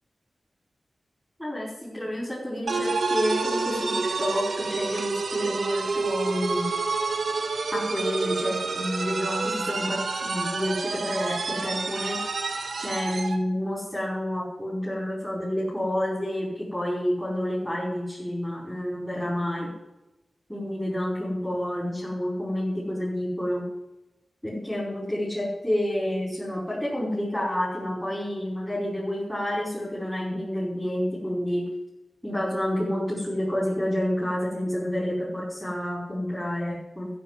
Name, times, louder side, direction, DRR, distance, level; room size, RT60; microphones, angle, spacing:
voice 1, 1.4-6.6 7.7-12.2 12.8-19.7 20.5-23.6 24.4-31.6 32.2-37.1, left 1 dB, 5° left, -6 dB, 5.0 m, -29 dB
sound 1, 2.7-13.4, right 4 dB, 75° right, 1.6 m, -28 dB
14.0 x 7.1 x 7.7 m, 0.95 s
wide cardioid pair, 125°, 0 cm